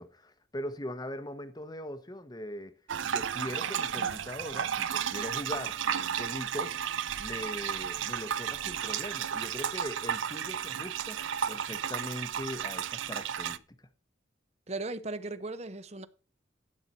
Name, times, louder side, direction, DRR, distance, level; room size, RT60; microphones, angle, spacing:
voice 1, 0.0-2.7 3.0-6.9 7.2-11.2 11.5-13.6, left 1 dB, 20° left, 0.9 m, -40 dB
sound 1, 2.9-13.6, right 8 dB, 80° right, 0.5 m, -33 dB
voice 2, 14.7-16.1, right 2 dB, 35° right, 0.8 m, -37 dB
12.0 x 8.8 x 4.2 m
head